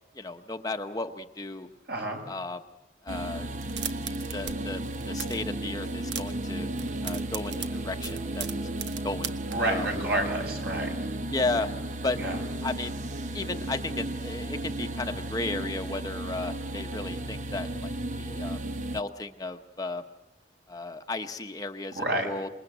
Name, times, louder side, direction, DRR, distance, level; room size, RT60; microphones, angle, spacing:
voice 1, 0.2-1.7 2.3-2.6 3.0-3.5 4.3-4.8 5.1-6.7 7.0-8.5 9.0-9.3 9.6-9.9 11.3-11.7 12.0-12.9 13.3-17.9 18.2-18.6 18.9-20.0 20.7-22.5, left 3 dB, 20° left, 6 dB, 0.9 m, -34 dB
voice 2, 1.9-2.2 9.5-10.9 12.2-12.4 22.0-22.3, right 1 dB, 60° right, 3 dB, 5.9 m, -29 dB
sound 1, 3.1-19.0, right 1 dB, 40° right, 0.8 m, -34 dB
sound 2, 3.5-4.6 4.8-5.5 5.8-6.4 6.7-9.6, right 9 dB, 75° right, 1.2 m, -37 dB
27.5 x 21.0 x 7.9 m, 0.92 s
head